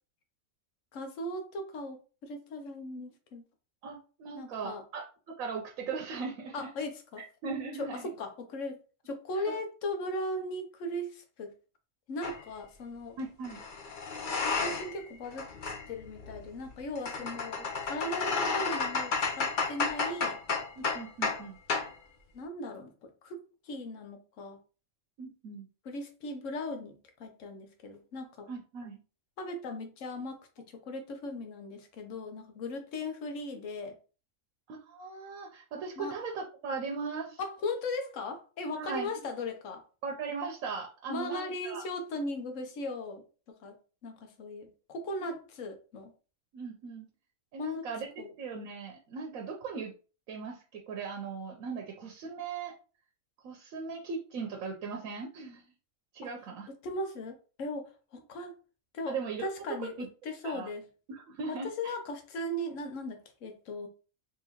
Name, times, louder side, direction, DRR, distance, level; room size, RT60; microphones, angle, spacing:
voice 1, 0.9-3.4 4.3-4.8 6.5-7.2 7.8-8.8 9.1-11.5 12.1-13.2 14.6-15.5 15.9-20.4 22.3-24.6 25.8-28.5 29.4-34.0 36.0-36.1 37.4-39.8 41.1-46.1 47.6-47.9 48.2-48.3 56.2-56.3 56.7-58.5 58.9-60.8 61.5-63.9, left 1 dB, 70° left, 1.1 m, -38 dB
voice 2, 3.8-6.7 7.4-8.0 9.3-9.5 13.2-13.6 17.6-17.7 20.8-21.6 25.2-25.7 28.5-29.0 34.7-37.4 38.7-39.1 40.0-41.8 45.2-45.4 46.5-47.1 47.5-48.1 48.4-49.9 50.3-52.8 53.4-55.6 56.1-56.7 59.1-59.5 60.0-60.1 60.4-60.7 61.1-61.9, right 5 dB, 90° right, 1.1 m, -38 dB
sound 1, 12.2-12.4 13.4-15.0 15.3-21.4 21.7-21.9, left 4 dB, 50° left, 0.6 m, -32 dB
3.8 x 3.0 x 2.9 m
omnidirectional pair, 1.4 m